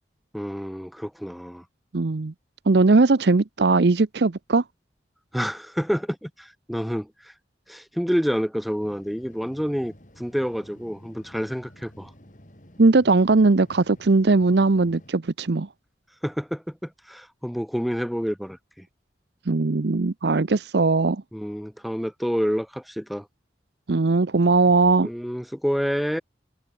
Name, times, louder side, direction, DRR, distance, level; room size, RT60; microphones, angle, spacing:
voice 1, 0.3-1.6 5.3-7.1 7.7-12.1 16.2-18.8 21.3-23.2 25.0-26.2, equal, ahead, 0.8 m, -28 dB
voice 2, 1.9-2.3 2.7-4.6 12.8-15.7 19.5-21.2 23.9-25.1, right 3 dB, 65° right, 0.7 m, -19 dB
sound 1, 8.8-15.1, equal, 45° left, 4.2 m, -51 dB
head